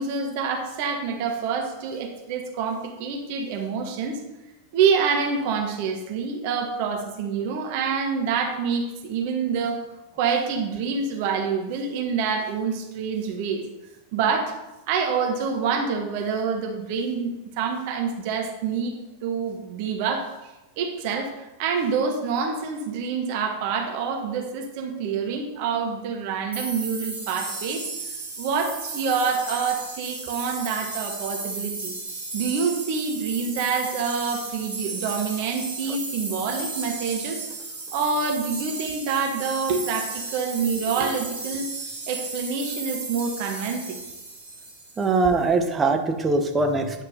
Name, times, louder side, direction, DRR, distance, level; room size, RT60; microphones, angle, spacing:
voice 1, 0.0-4.2 4.7-9.8 10.2-13.6 14.1-14.6 14.9-18.9 19.2-20.3 20.8-27.8 28.4-31.9 32.3-37.5 37.9-41.7 42.1-44.0, right 5 dB, 45° right, 3 dB, 1.3 m, -27 dB
sound 1, 26.5-45.2, right 3 dB, 75° right, 2.4 m, -34 dB
voice 2, 45.0-47.0, right 3 dB, 20° right, 4 dB, 1.0 m, -22 dB
9.6 x 4.8 x 5.0 m, 0.98 s
figure-of-eight pair, 90°, 0 cm